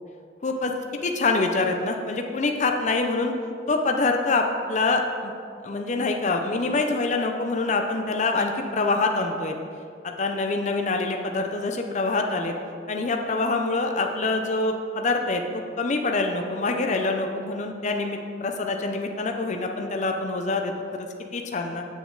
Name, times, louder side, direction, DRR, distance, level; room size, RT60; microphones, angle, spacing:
voice 1, 0.4-0.7 1.0-3.3 3.7-5.3 5.6-9.6 10.0-12.5 12.9-15.4 15.8-20.7 21.0-21.1 21.3-21.8, left 3 dB, 40° left, 3 dB, 0.5 m, -25 dB
8.1 x 7.0 x 3.9 m, 2.3 s
head